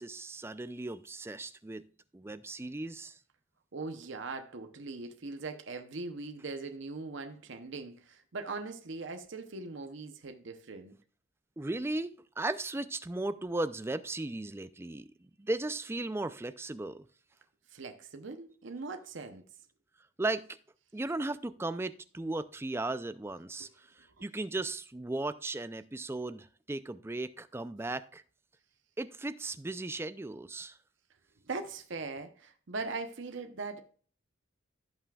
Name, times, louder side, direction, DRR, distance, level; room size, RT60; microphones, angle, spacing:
voice 1, 0.0-1.8 2.1-3.2 11.6-17.1 20.2-20.6 20.9-28.2 29.0-30.8, right 2 dB, 10° right, 0.3 m, -36 dB
voice 2, 3.7-11.0 17.7-19.4 23.6-23.7 24.1-24.3 31.5-33.8, right 3 dB, 60° right, 0.7 m, -40 dB
16.0 x 5.8 x 2.3 m
head